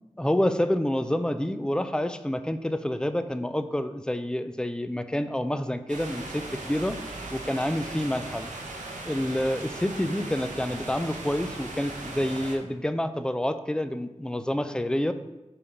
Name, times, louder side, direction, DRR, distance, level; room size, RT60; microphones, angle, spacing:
voice 1, 0.2-7.0 7.3-8.5 9.1-15.1, left 1 dB, 5° left, 10 dB, 0.4 m, -28 dB
sound 1, 5.9-12.6, right 2 dB, 85° right, 1.0 m, -38 dB
6.9 x 3.6 x 5.2 m, 1.0 s
wide cardioid pair, 75°, 13 cm